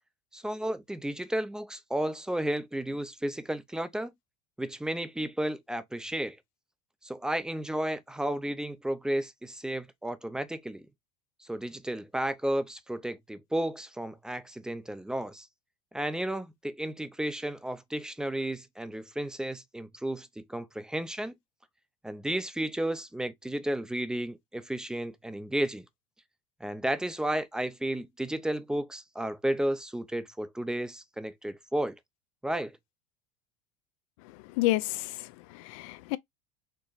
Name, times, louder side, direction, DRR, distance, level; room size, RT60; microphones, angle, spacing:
voice 1, 0.3-4.1 4.6-6.4 7.0-10.9 11.4-15.5 15.9-21.4 22.0-25.8 26.6-32.0 32.4-32.8, right 1 dB, 5° right, 0.5 m, -33 dB
voice 2, 34.6-36.2, left 17 dB, 75° left, 0.5 m, -30 dB
4.5 x 2.9 x 2.4 m
supercardioid pair, 120°, 17 cm